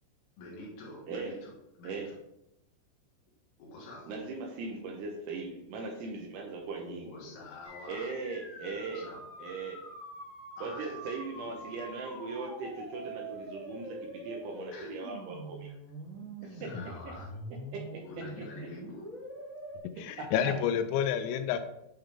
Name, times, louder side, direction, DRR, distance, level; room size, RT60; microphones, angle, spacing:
voice 1, 0.4-2.2 3.6-4.1 6.8-8.1 8.9-9.2 10.6-11.0 11.4-11.5 14.7-15.0 15.7-15.8 16.4-17.3 18.0-19.1, left 2 dB, 70° left, -2 dB, 2.9 m, -47 dB
voice 2, 4.1-7.3 7.9-9.1 9.4-9.8 10.6-14.0 14.2-15.7 17.7-18.0 20.2-20.5, right 4 dB, 75° right, 0 dB, 2.6 m, -39 dB
sound 1, 7.6-19.8, right 1 dB, 20° left, 1.2 m, -44 dB
voice 3, 20.0-21.6, left 9 dB, 85° left, 9 dB, 2.9 m, -29 dB
8.9 x 3.8 x 3.4 m, 0.83 s
omnidirectional pair, 5.4 m